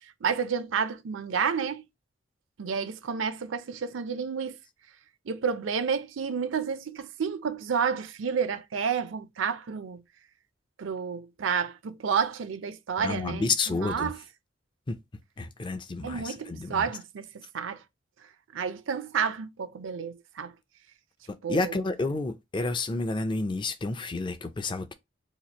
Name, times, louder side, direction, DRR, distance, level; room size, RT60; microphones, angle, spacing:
voice 1, 0.2-1.8 2.6-4.6 5.3-10.0 10.8-14.2 16.0-17.3 17.5-17.8 18.5-20.5 21.4-21.8, right 6 dB, 80° right, 0.5 m, -30 dB
voice 2, 13.0-14.1 14.9-15.0 15.4-16.9 21.5-24.9, left 3 dB, 25° left, 0.4 m, -30 dB
2.9 x 2.4 x 3.9 m
head